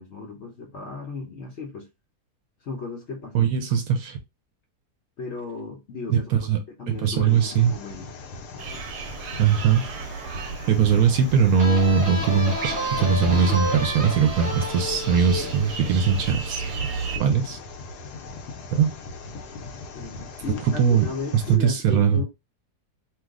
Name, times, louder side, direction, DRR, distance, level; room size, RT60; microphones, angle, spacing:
voice 1, 0.0-1.9 2.6-3.5 5.2-8.2 17.4-17.6 19.9-22.2, left 4 dB, 55° left, 0.8 m, -36 dB
voice 2, 3.3-4.2 6.1-6.2 6.5-6.6 7.0-7.7 9.4-9.9 10.7-12.6 12.9-16.6 17.2-17.6 18.7-18.9 20.8-21.1 21.5-22.2, right 7 dB, 70° right, 1.0 m, -20 dB
sound 1, 7.3-21.6, left 4 dB, 80° left, 1.2 m, -40 dB
sound 2, 8.6-17.2, right 5 dB, 85° right, 1.2 m, -35 dB
sound 3, 11.6-17.0, right 1 dB, 25° right, 0.9 m, -31 dB
3.0 x 2.0 x 3.5 m
omnidirectional pair, 1.7 m